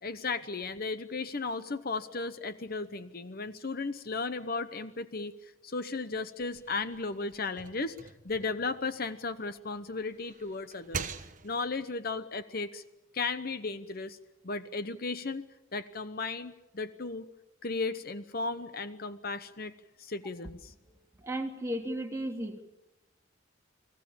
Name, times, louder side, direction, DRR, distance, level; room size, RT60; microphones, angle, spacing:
voice 1, 0.0-11.1 11.4-12.8 13.1-14.2 14.4-15.4 15.7-17.3 17.6-19.7 20.0-20.7, left 3 dB, 45° left, 11 dB, 0.9 m, -35 dB
sound 1, 6.4-9.6 10.0-11.8, right 5 dB, 40° right, 1.2 m, -43 dB
voice 2, 21.2-22.6, right 1 dB, 15° right, 1 dB, 3.0 m, -34 dB
30.0 x 21.0 x 7.3 m, 0.94 s
head